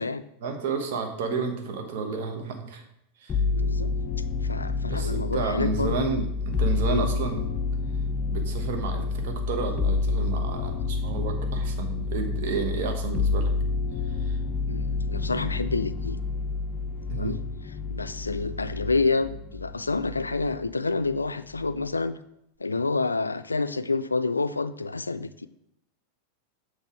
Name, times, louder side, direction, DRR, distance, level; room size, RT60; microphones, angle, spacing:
voice 1, 0.4-2.8 3.2-3.4 4.9-7.6 8.3-13.5 14.1-14.4 17.1-17.4, right 5 dB, 60° right, 4 dB, 1.2 m, -31 dB
sound 1, 3.3-20.7 21.1-21.8, left 4 dB, 25° left, 0.6 m, -29 dB
voice 2, 3.5-3.9 4.4-6.2 6.9-7.1 14.7-16.2 17.1-17.4 17.9-22.2 22.6-25.5, left 3 dB, 90° left, 13 dB, 0.3 m, -28 dB
8.1 x 3.2 x 4.4 m, 0.82 s
figure-of-eight pair, 90°, 0 cm